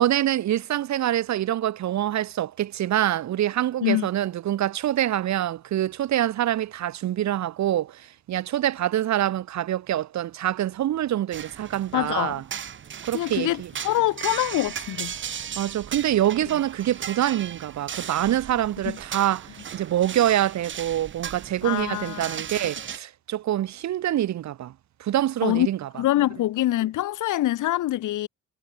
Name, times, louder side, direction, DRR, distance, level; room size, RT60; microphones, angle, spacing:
voice 1, 0.0-12.4 13.1-13.7 15.6-24.7 25.0-25.9, right 12 dB, 60° right, 0.8 m, -25 dB
sound 1, 11.3-23.0, right 8 dB, 40° right, 0.9 m, -37 dB
voice 2, 11.9-12.4 13.1-15.1 18.9-19.0 21.6-22.7 25.4-25.7 26.0-28.3, left 14 dB, 75° left, 0.8 m, -25 dB
cardioid pair, 150°, 31 cm